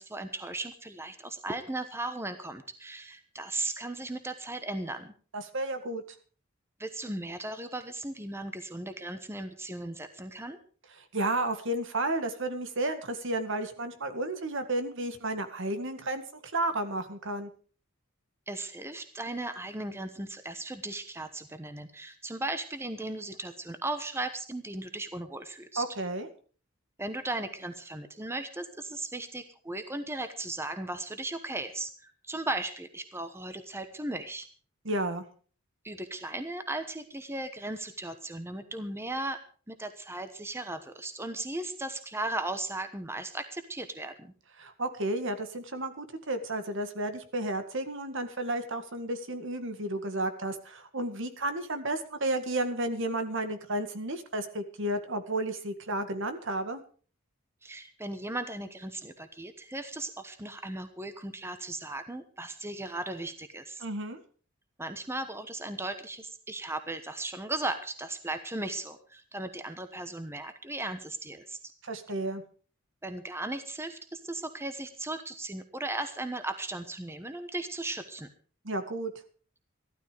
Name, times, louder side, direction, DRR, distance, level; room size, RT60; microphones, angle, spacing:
voice 1, 0.0-5.1 6.8-10.6 18.5-25.8 27.0-34.5 35.8-39.4 39.7-44.3 57.6-63.8 64.8-71.6 73.0-78.3, right 2 dB, 10° right, 9 dB, 1.1 m, -37 dB
voice 2, 5.3-6.0 11.0-17.5 25.8-26.3 34.9-35.2 44.6-56.8 63.8-64.2 71.8-72.4 78.6-79.1, right 1 dB, 65° right, 9 dB, 1.9 m, -32 dB
15.0 x 13.0 x 5.1 m, 0.41 s
head